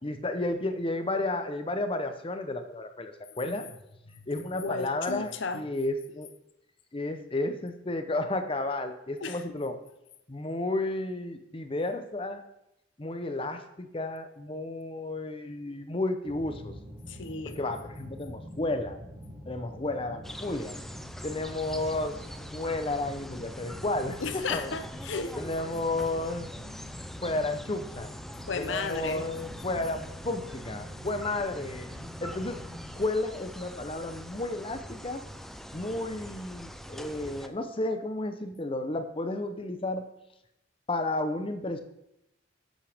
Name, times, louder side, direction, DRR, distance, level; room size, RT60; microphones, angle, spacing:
voice 1, 0.0-3.6 4.3-6.3 6.9-9.7 10.3-12.4 13.0-16.7 17.4-19.0 19.5-20.8 21.2-22.2 22.5-24.7 25.4-26.5 27.2-28.1 28.6-31.9 32.2-32.6 32.9-35.2 35.7-40.0 40.9-41.8, left 2 dB, 30° left, 8 dB, 0.8 m, -32 dB
voice 2, 4.6-5.7 9.2-9.6 17.1-17.6 24.2-25.4 28.5-29.3, left 4 dB, 75° left, 10 dB, 0.8 m, -34 dB
sound 1, 16.2-33.0, equal, 20° right, 1.9 m, -45 dB
sound 2, 20.2-37.5, equal, ahead, 0.4 m, -44 dB
11.0 x 7.4 x 3.5 m, 0.84 s
head